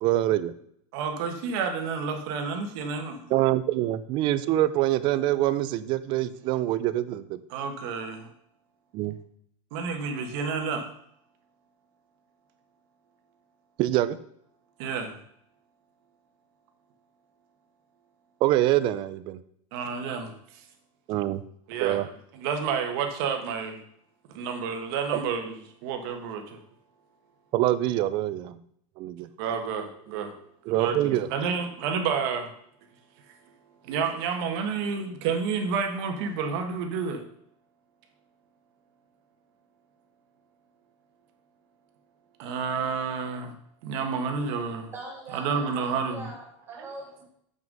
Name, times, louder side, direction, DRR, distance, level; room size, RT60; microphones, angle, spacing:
voice 1, 0.0-0.5 3.3-7.4 8.9-9.2 13.8-14.2 18.4-19.4 21.1-21.4 21.8-22.1 27.5-28.6 29.0-29.3 30.7-31.3, right 14 dB, 30° right, 14 dB, 0.4 m, -25 dB
voice 2, 0.9-3.2 7.5-8.3 9.7-10.9 14.8-15.1 19.7-20.6 21.7-22.0 22.3-23.8 24.3-25.5 25.8-26.6 29.4-30.3 30.7-32.5 33.8-37.2 42.4-43.5 43.8-44.9 45.3-46.3 46.8-46.9, right 5 dB, 45° right, 5 dB, 1.4 m, -30 dB
voice 3, 44.9-47.3, right 2 dB, 15° right, -1 dB, 2.5 m, -43 dB
7.2 x 6.2 x 5.3 m, 0.69 s
supercardioid pair, 165°, 17 cm